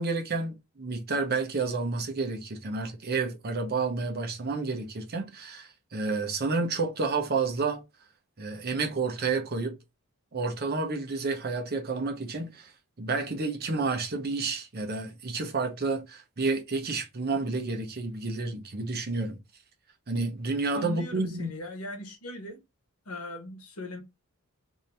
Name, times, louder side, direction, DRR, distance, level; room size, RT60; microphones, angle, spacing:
voice 1, 0.0-7.8 8.4-9.7 10.3-12.7 13.0-19.4 20.1-21.5, right 3 dB, 45° right, 0.8 m, -30 dB
voice 2, 20.7-22.6 23.0-24.0, left 1 dB, 75° left, 1.1 m, -39 dB
2.7 x 2.7 x 3.3 m
head